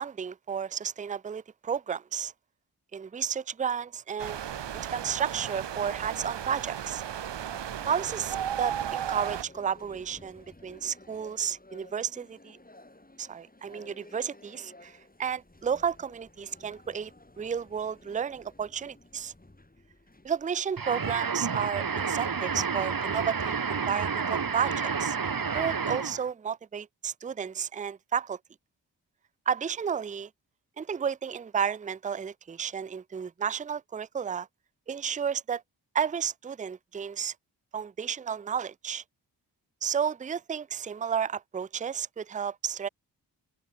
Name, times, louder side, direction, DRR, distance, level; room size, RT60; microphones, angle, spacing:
voice 1, 0.0-2.3 2.9-4.4 4.7-7.0 7.8-12.6 13.2-17.1 17.4-19.3 20.2-25.2 25.5-28.4 29.5-30.3 30.8-34.5 34.9-35.6 35.9-37.3 37.7-39.0 39.8-42.9, right 7 dB, 20° right, 0.4 m, -32 dB
sound 1, 4.2-9.4, right 10 dB, 80° right, 0.9 m, -35 dB
sound 2, 4.6-21.3, left 2 dB, 20° left, 6.5 m, -55 dB
sound 3, 20.8-26.3, right 5 dB, 55° right, 1.9 m, -30 dB
open air
cardioid pair, 60°, 41 cm